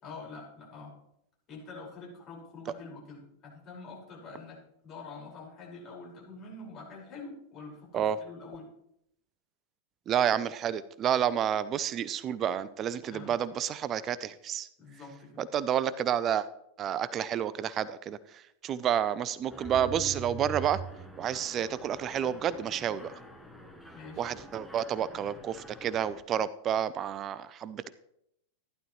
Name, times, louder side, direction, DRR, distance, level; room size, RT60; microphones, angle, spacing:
voice 1, 0.0-1.0 1.5-4.6 4.8-8.7 13.1-13.3 14.8-15.4 23.9-24.3, left 3 dB, 35° left, -3 dB, 5.3 m, -46 dB
voice 2, 10.1-14.7 15.4-16.5 16.8-18.2 18.6-20.8 21.2-23.1 24.2-27.9, right 9 dB, 30° right, 17 dB, 0.5 m, -30 dB
Mechanisms, 19.5-26.2, right 4 dB, ahead, 1.3 m, -44 dB
14.5 x 11.5 x 3.2 m, 0.77 s
figure-of-eight pair, 90°, 0 cm